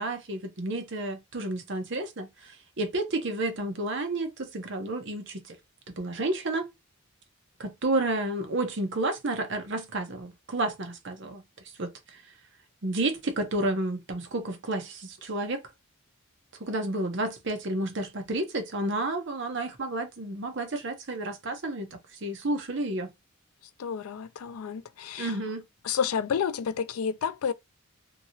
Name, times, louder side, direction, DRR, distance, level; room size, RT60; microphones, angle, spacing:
voice 1, 0.0-5.6 5.9-6.7 7.6-11.4 11.8-12.2 12.8-15.6 16.6-23.1 25.2-25.6, right 2 dB, 55° right, 0.8 m, -31 dB
voice 2, 23.8-25.4 25.8-27.5, left 7 dB, 85° left, 0.4 m, -30 dB
2.9 x 2.8 x 2.6 m
head